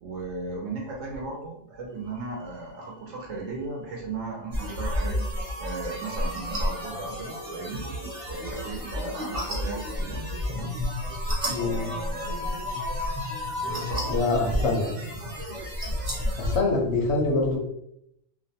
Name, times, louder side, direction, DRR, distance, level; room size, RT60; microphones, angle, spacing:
voice 1, 0.0-5.2 5.6-7.9 8.2-10.7 11.6-12.7 13.6-14.9, right 3 dB, 65° right, -1 dB, 0.8 m, -37 dB
sound 1, 2.1-2.9 3.1-3.4 4.6-14.1, left 3 dB, 85° left, 1.0 m, -40 dB
sound 2, 4.5-16.6, equal, 35° right, 0.5 m, -32 dB
voice 2, 11.5-11.9 14.1-14.9 16.4-17.6, left 3 dB, 60° left, -1 dB, 0.8 m, -24 dB
2.5 x 2.1 x 2.6 m, 0.77 s
omnidirectional pair, 1.4 m